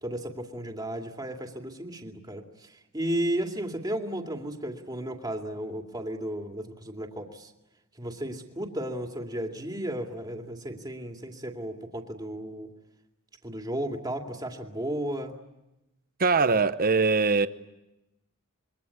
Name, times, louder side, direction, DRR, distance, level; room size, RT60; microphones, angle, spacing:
voice 1, 0.0-7.5 8.0-12.7 13.4-15.3, right 1 dB, 20° right, 2.4 m, -34 dB
voice 2, 16.2-17.5, right 4 dB, 45° right, 0.9 m, -22 dB
27.0 x 23.0 x 9.7 m
head